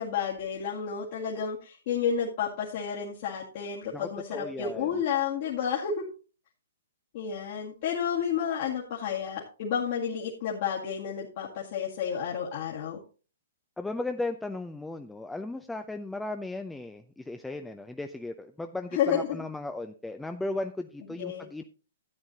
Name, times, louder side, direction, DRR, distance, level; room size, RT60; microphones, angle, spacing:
voice 1, 0.0-6.0 7.1-13.0 18.9-19.4 21.2-21.5, left 7 dB, 50° left, -5 dB, 2.1 m, -31 dB
voice 2, 3.9-4.9 13.8-21.6, left 2 dB, 5° left, 6 dB, 0.5 m, -36 dB
13.0 x 8.9 x 2.8 m, 0.36 s
figure-of-eight pair, 120°, 0 cm